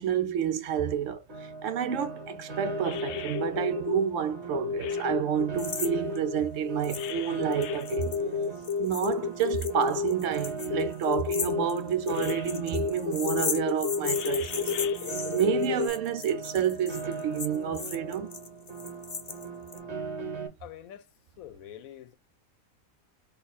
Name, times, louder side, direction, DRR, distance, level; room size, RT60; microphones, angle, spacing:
voice 1, 0.0-8.2 8.8-14.7 15.3-18.3, right 8 dB, 70° right, 0.9 m, -29 dB
Piano, 1.3-20.5, right 4 dB, 55° right, 1.4 m, -40 dB
sound 1, 2.2-2.4 2.6-4.0 4.5-5.5 5.8-10.1 10.7-11.7 12.1-12.4 12.7-15.9, left 6 dB, 65° left, 0.7 m, -31 dB
sound 2, 5.6-5.9 6.2-6.3 6.8-7.1 7.4-19.8, left 5 dB, 45° left, 0.4 m, -37 dB
voice 2, 20.6-21.0 21.4-22.1, left 11 dB, 85° left, 1.1 m, -45 dB
4.1 x 2.4 x 4.0 m
omnidirectional pair, 1.4 m